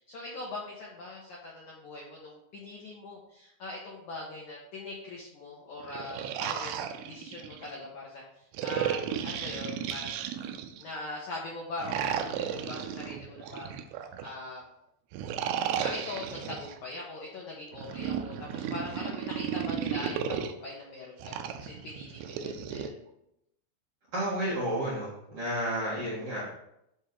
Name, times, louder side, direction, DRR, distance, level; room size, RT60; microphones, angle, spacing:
voice 1, 0.0-10.2 10.8-13.7 14.2-14.6 15.8-23.0, left 2 dB, 70° left, -4 dB, 1.8 m, -41 dB
sound 1, 5.8-7.7 8.5-10.9 11.8-14.3 15.1-16.7 17.7-20.5 21.2-22.9, right 8 dB, 85° right, 2.4 m, -34 dB
voice 2, 24.1-26.5, equal, 50° right, -8 dB, 2.0 m, -31 dB
9.9 x 3.7 x 4.7 m, 0.81 s
omnidirectional pair, 5.3 m